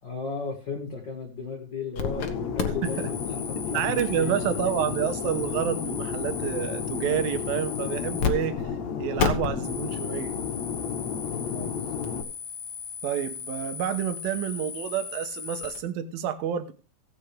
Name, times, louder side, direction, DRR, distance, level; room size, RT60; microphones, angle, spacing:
voice 1, 0.0-4.4 11.5-12.1, left 4 dB, 35° left, 1.9 m, -36 dB
sound 1, 2.0-2.3 2.6-8.3 8.6-8.7 9.2-15.8, left 6 dB, 75° left, 1.2 m, -34 dB
Fixed-wing aircraft airplane, 2.0-12.2, left 6 dB, 60° left, 2.0 m, -32 dB
voice 2, 3.7-8.6 9.0-10.4 13.0-16.7, right 10 dB, 70° right, 2.5 m, -29 dB
17.0 x 8.4 x 3.3 m
omnidirectional pair, 4.8 m